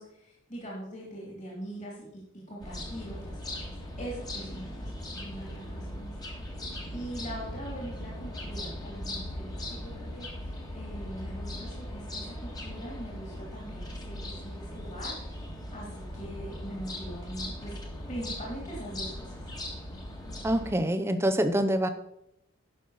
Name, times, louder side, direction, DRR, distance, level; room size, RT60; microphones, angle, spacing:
voice 1, 0.0-3.6 4.0-17.8 18.1-19.5, right 1 dB, 35° left, -4 dB, 2.6 m, -42 dB
sound 1, 2.6-20.7, left 1 dB, 20° left, 1.6 m, -39 dB
voice 2, 20.4-21.9, right 1 dB, 10° right, 9 dB, 0.7 m, -25 dB
11.0 x 6.0 x 5.5 m, 0.81 s
head